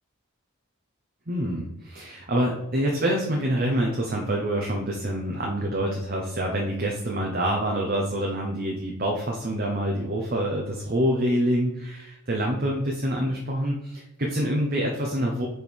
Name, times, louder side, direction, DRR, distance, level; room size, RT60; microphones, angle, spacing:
voice 1, 1.3-15.5, right 1 dB, 40° right, 0 dB, 0.9 m, -26 dB
5.4 x 4.7 x 4.6 m, 0.89 s
head